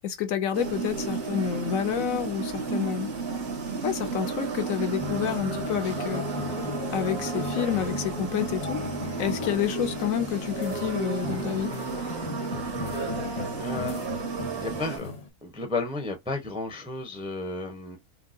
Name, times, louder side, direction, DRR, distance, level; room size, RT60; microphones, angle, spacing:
voice 1, 0.0-3.1 3.8-6.2 6.9-8.8 9.2-11.7, left 9 dB, 70° left, 0.9 m, -29 dB
sound 1, 0.5-15.0, right 5 dB, 60° right, 1.7 m, -33 dB
sound 2, 5.0-15.3, left 4 dB, 35° left, 0.7 m, -36 dB
voice 2, 13.6-14.2 14.5-15.1 15.4-18.0, left 3 dB, 5° right, 0.5 m, -33 dB
4.5 x 2.1 x 2.5 m
omnidirectional pair, 1.6 m